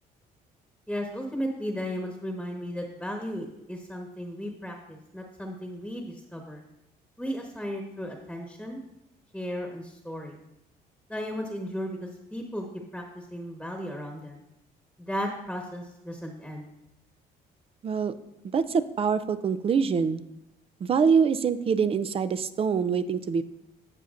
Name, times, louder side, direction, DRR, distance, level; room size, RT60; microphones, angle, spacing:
voice 1, 0.9-6.0 6.3-6.6 7.2-8.8 9.3-10.4 11.1-12.6 12.9-13.0 13.3-14.4 15.0-16.7, equal, ahead, 2 dB, 1.3 m, -35 dB
voice 2, 17.8-18.1 18.5-20.2 20.8-23.4, right 6 dB, 35° right, 13 dB, 0.5 m, -24 dB
15.5 x 5.7 x 2.6 m, 0.86 s
cardioid pair, 110°, 17 cm